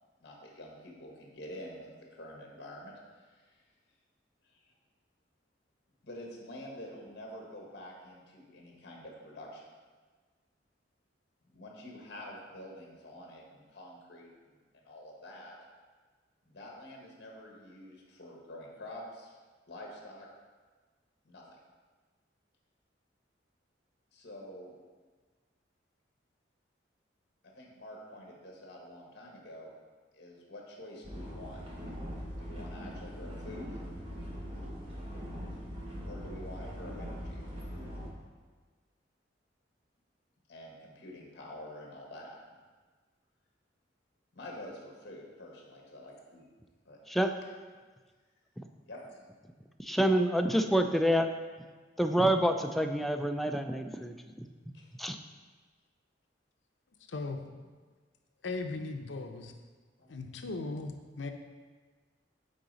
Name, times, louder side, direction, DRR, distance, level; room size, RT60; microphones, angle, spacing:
voice 1, 0.2-3.6 4.4-4.6 6.0-9.7 11.4-15.5 16.5-19.3 19.7-20.3 21.2-21.6 24.1-24.8 27.5-29.7 30.1-31.6 32.4-33.8 36.0-37.4 40.5-42.4 44.3-46.4 46.8-47.0 48.9-49.2 54.7-54.9 60.0-60.1, left 1 dB, 60° left, -1 dB, 1.3 m, -47 dB
sound 1, 31.0-38.1, equal, 30° right, 1.4 m, -41 dB
voice 2, 49.8-51.3 52.0-54.5 55.0-55.2, right 1 dB, ahead, 5 dB, 0.3 m, -27 dB
voice 3, 57.1-57.4 58.4-59.5 60.1-61.3, left 3 dB, 80° left, 5 dB, 0.6 m, -37 dB
8.6 x 4.0 x 4.0 m, 1.4 s
head